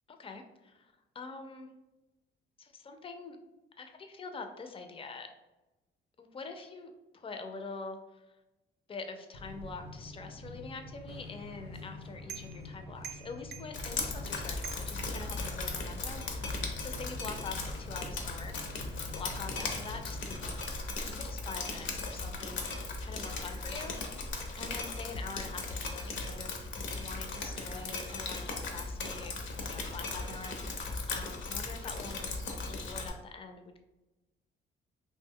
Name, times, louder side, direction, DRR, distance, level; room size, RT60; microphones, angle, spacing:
voice 1, 0.1-1.7 2.6-3.4 3.8-5.3 6.2-8.4 8.9-18.5 19.1-20.8 21.1-26.7 26.9-29.3 29.6-32.3 32.7-34.0, left 4 dB, 25° left, 6 dB, 0.4 m, -45 dB
sound 1, 9.3-20.6, left 2 dB, 90° left, 1.0 m, -47 dB
sound 2, 11.1-15.8, right 7 dB, 55° right, 0.4 m, -49 dB
Drip, 13.7-33.1, left 3 dB, 70° left, 0.6 m, -37 dB
2.7 x 2.1 x 3.6 m, 1.0 s
cardioid pair, 90°, 20 cm